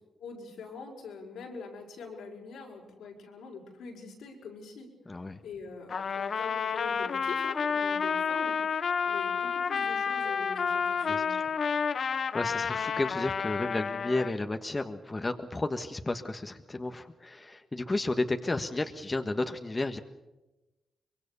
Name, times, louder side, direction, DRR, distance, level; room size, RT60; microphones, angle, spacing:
voice 1, 0.2-4.9 5.4-8.8 9.1-11.4, left 5 dB, 90° left, 0 dB, 5.9 m, -44 dB
voice 2, 5.1-5.4 11.1-11.5 12.3-20.0, left 2 dB, 25° left, 7 dB, 1.5 m, -32 dB
Trumpet, 5.9-14.3, left 6 dB, 60° left, 1.0 m, -30 dB
24.0 x 23.0 x 6.9 m, 1.0 s
cardioid pair, 65°, 0 cm